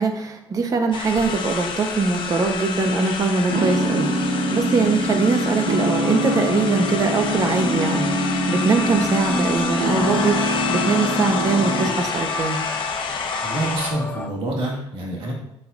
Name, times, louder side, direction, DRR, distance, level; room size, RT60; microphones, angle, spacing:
voice 1, 0.0-4.1 4.5-8.1 8.5-12.6, right 4 dB, 35° right, 5 dB, 1.0 m, -22 dB
sound 1, 0.9-13.9, left 5 dB, 60° left, 1.1 m, -29 dB
sound 2, 3.5-11.9, equal, 90° right, 1.8 m, -24 dB
sound 3, 6.0-14.3, left 1 dB, 15° left, 0.7 m, -34 dB
voice 2, 13.4-15.3, right 1 dB, 65° right, -2 dB, 2.0 m, -27 dB
7.6 x 7.5 x 2.6 m, 0.83 s
cardioid pair, 125°, 10 cm